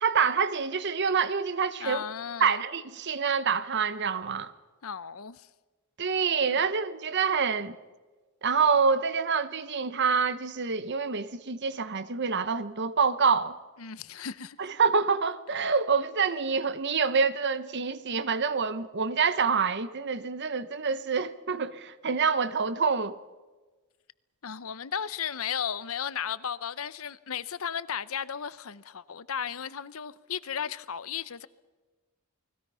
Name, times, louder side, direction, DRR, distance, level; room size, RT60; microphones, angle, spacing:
voice 1, 0.0-2.0 2.4-4.5 6.0-7.8 8.4-13.6 14.6-23.2, right 5 dB, 55° right, 1.0 m, -26 dB
voice 2, 1.8-2.6 4.8-5.5 6.5-6.6 13.8-14.6 24.4-31.5, left 8 dB, 75° left, 0.8 m, -35 dB
30.0 x 20.5 x 5.6 m
head